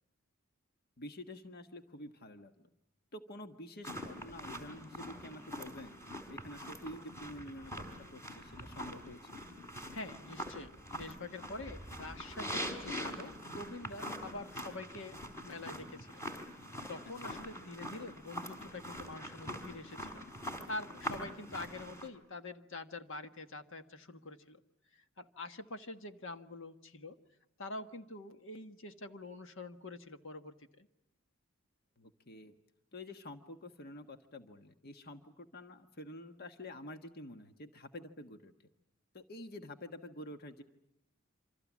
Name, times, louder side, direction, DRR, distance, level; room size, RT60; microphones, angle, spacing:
voice 1, 1.0-2.7 3.1-7.7 8.0-9.4 17.2-17.4 32.0-32.5 32.9-38.5 39.1-40.6, left 1 dB, 50° left, 7 dB, 1.3 m, -48 dB
sound 1, 3.8-22.1, equal, 15° left, 4.2 m, -44 dB
voice 2, 9.9-16.2 16.9-24.6 24.9-27.2 27.6-30.9, left 2 dB, 65° left, 8 dB, 1.5 m, -46 dB
28.0 x 26.0 x 7.3 m, 0.83 s
head